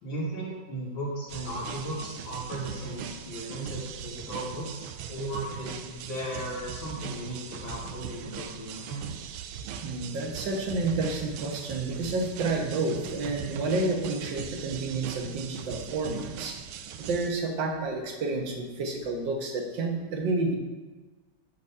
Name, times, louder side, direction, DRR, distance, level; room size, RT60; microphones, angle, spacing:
voice 1, 0.0-9.3, right 1 dB, 65° left, -6 dB, 2.5 m, -36 dB
sound 1, 1.3-17.3, right 8 dB, 90° right, 1.4 m, -40 dB
voice 2, 9.8-16.6 17.0-20.6, right 3 dB, 65° right, 2 dB, 1.8 m, -30 dB
9.6 x 4.1 x 5.4 m, 1.3 s
omnidirectional pair, 2.3 m